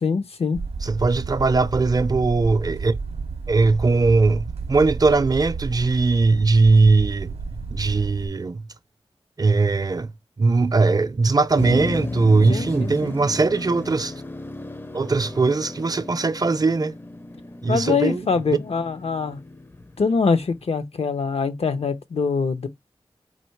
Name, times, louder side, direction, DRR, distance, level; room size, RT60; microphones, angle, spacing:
voice 1, 0.0-0.6 12.5-13.1 17.7-19.4 20.0-22.7, left 5 dB, 75° left, 0.7 m, -24 dB
sound 1, 0.5-8.3, right 4 dB, 90° right, 0.5 m, -32 dB
voice 2, 0.8-3.0 3.5-7.3 7.7-8.6 9.4-10.1 10.4-14.1 14.9-16.9 17.6-18.3, right 3 dB, 40° right, 0.4 m, -20 dB
Motor vehicle (road), 11.6-20.5, left 2 dB, 20° left, 0.5 m, -34 dB
4.3 x 2.7 x 4.5 m
wide cardioid pair, 65°, 10 cm